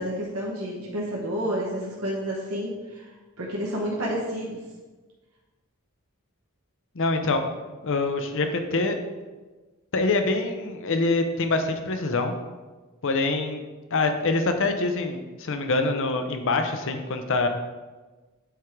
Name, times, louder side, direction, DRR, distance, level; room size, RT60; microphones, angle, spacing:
voice 1, 0.0-3.1 3.4-4.6, equal, 75° right, -4 dB, 1.1 m, -30 dB
voice 2, 6.9-7.4 7.8-8.9 9.9-12.3 13.0-13.6 13.9-17.5, left 3 dB, 60° left, 7 dB, 0.7 m, -25 dB
8.0 x 3.6 x 4.6 m, 1.3 s
head